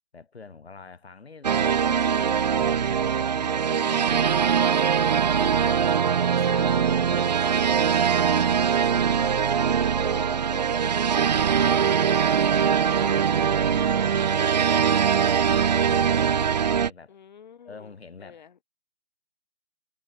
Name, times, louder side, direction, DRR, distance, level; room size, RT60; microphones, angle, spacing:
voice 1, 0.1-5.9 6.3-8.6 9.1-10.7 12.6-17.2 17.6-18.6, left 4 dB, 90° left, 5.8 m, -46 dB
sound 1, 1.4-16.9, right 7 dB, 45° right, 0.8 m, -22 dB
sound 2, 1.6-10.4, left 26 dB, 20° left, 7.8 m, -61 dB
voice 2, 5.3-5.8 6.4-7.7 9.2-11.4 13.0-13.5 17.1-17.9 18.2-18.6, left 7 dB, 45° left, 6.3 m, -44 dB
hypercardioid pair, 170°, 31 cm